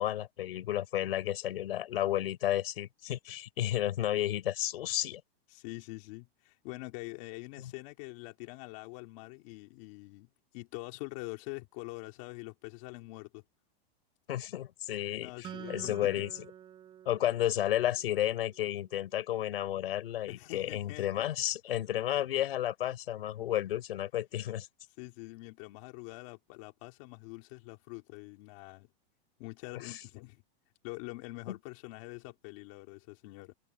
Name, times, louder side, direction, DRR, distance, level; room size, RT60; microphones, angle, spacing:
voice 1, 0.0-5.2 7.6-7.7 14.3-16.4 17.0-24.7 29.8-30.0 31.5-31.6, left 12 dB, 70° left, 4.5 m, -32 dB
voice 2, 5.5-13.4 15.2-16.0 20.3-21.3 25.0-28.9 29.4-30.4 30.8-33.5, left 23 dB, 30° left, 3.1 m, -45 dB
Acoustic guitar, 15.4-18.9, right 10 dB, 15° right, 6.9 m, -49 dB
supercardioid pair, 180°, 30 cm